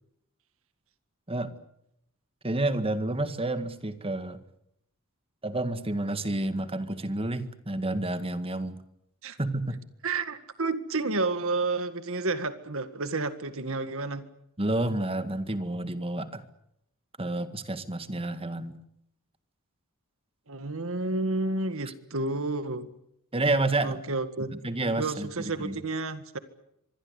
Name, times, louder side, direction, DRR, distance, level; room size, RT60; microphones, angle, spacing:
voice 1, 2.4-4.4 5.4-8.8 9.4-9.8 14.6-16.4 17.2-18.7 21.9-22.0 23.3-24.0 24.5-25.3 25.6-25.8, right 2 dB, 25° right, 10 dB, 1.9 m, -29 dB
voice 2, 10.0-14.3 20.5-22.9 23.8-24.5 25.0-26.4, right 3 dB, 65° right, 11 dB, 1.9 m, -30 dB
25.5 x 21.5 x 8.3 m, 0.79 s
head